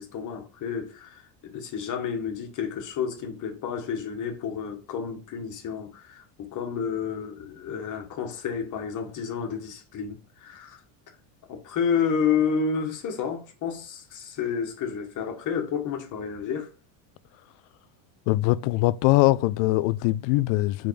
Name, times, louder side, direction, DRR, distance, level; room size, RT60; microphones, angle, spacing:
voice 1, 0.0-10.8 11.5-16.7, left 6 dB, 40° left, 1.7 m, -30 dB
voice 2, 18.3-20.9, left 18 dB, 65° left, 0.5 m, -22 dB
5.1 x 3.9 x 4.7 m
cardioid pair, 140°, 49 cm